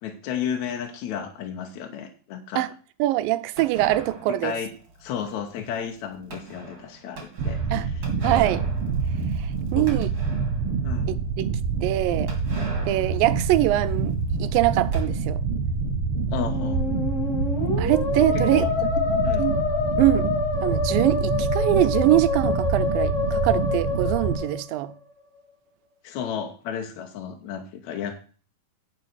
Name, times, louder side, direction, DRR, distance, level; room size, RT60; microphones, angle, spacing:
voice 1, 0.0-2.7 4.4-4.7 5.0-8.1 9.7-9.9 10.8-11.1 16.3-16.8 18.5-18.7 19.2-19.5 26.0-28.1, left 8 dB, 70° left, 2.0 m, -33 dB
voice 2, 3.0-4.6 7.7-7.9 8.2-8.7 9.4-10.1 11.1-11.5 11.8-12.3 12.8-15.4 17.8-18.7 19.0-19.1 19.4-19.6 20.0-20.3 20.6-24.9, right 16 dB, 85° right, 2.3 m, -23 dB
sound 1, 3.6-10.8 11.2-11.3 11.5-11.6 12.3-15.0, right 3 dB, 30° right, 2.7 m, -40 dB
sound 2, 7.4-24.4, right 5 dB, 60° right, 1.5 m, -26 dB
Musical instrument, 16.3-25.1, left 5 dB, 10° left, 2.9 m, -27 dB
10.0 x 5.4 x 6.3 m
omnidirectional pair, 4.0 m